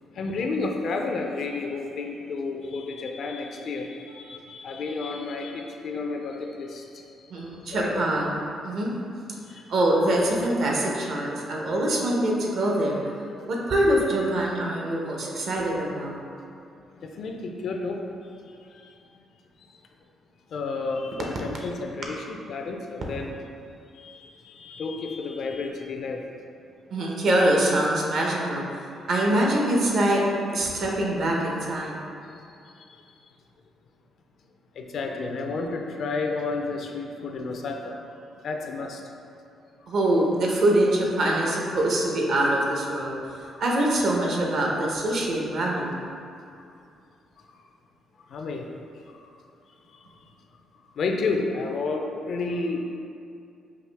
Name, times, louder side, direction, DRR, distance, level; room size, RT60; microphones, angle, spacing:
voice 1, 0.1-8.0 9.5-9.6 13.4-13.5 17.0-18.1 18.4-19.0 19.6-19.7 20.5-23.4 23.9-26.2 32.6-33.0 34.7-38.0 38.4-39.0 43.5-43.6 48.3-48.7 49.1-49.3 49.9-50.0 51.0-52.9, left 3 dB, 65° left, 3 dB, 0.4 m, -31 dB
voice 2, 7.3-8.9 9.7-13.0 13.4-16.2 26.9-28.6 29.1-30.2 30.5-32.0 39.9-43.2 43.6-46.0, right 1 dB, 65° right, -2 dB, 0.7 m, -24 dB
4.8 x 2.5 x 3.3 m, 2.5 s
cardioid pair, 90°, 0 cm